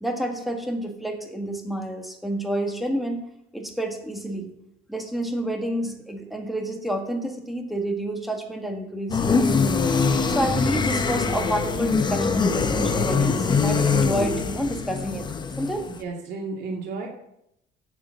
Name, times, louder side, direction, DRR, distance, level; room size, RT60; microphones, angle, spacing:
voice 1, 0.0-3.2 3.5-4.5 4.9-9.6 10.3-15.8, right 1 dB, ahead, 3 dB, 1.6 m, -29 dB
sound 1, 9.1-16.0, left 5 dB, 20° left, 0.8 m, -23 dB
voice 2, 16.0-17.1, right 3 dB, 60° right, -2 dB, 2.6 m, -32 dB
8.4 x 7.0 x 8.1 m, 0.79 s
cardioid pair, 150°, 20 cm